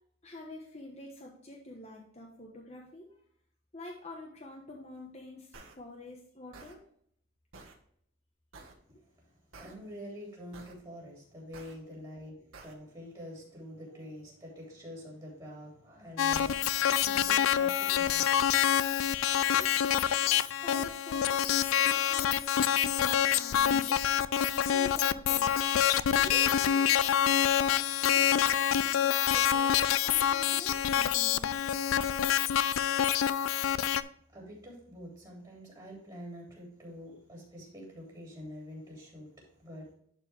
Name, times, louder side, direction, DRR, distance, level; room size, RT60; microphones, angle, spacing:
voice 1, 0.2-3.1 3.7-6.8 20.6-25.5 26.2-31.7, left 1 dB, 35° left, -1 dB, 1.1 m, -47 dB
sound 1, 5.5-5.7 6.5-6.7 7.5-7.7 8.5-8.7 9.5-9.7 10.5-10.7 11.5-11.7 12.5-12.7, right 3 dB, 85° right, 1.8 m, -50 dB
voice 2, 8.9-19.0 19.5-20.4 20.7-20.8 34.3-39.9, equal, 20° right, -4 dB, 3.2 m, -47 dB
sound 2, 16.2-34.0, left 10 dB, 90° left, 0.4 m, -26 dB
11.5 x 4.5 x 3.5 m, 0.65 s
head